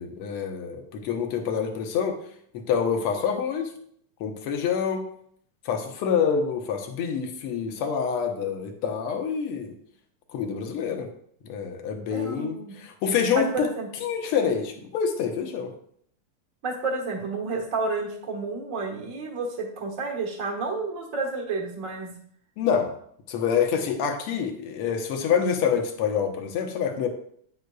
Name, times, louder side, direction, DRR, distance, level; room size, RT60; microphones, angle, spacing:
voice 1, 0.0-2.2 2.7-3.7 4.2-5.0 5.6-9.7 10.3-11.1 11.4-13.7 14.0-15.7 22.6-22.9 23.3-27.1, left 7 dB, 65° left, 4 dB, 1.5 m, -26 dB
voice 2, 12.1-12.7 13.3-13.9 16.6-22.1, right 3 dB, 45° right, 0 dB, 1.1 m, -30 dB
9.1 x 7.9 x 2.3 m, 0.64 s
omnidirectional pair, 3.3 m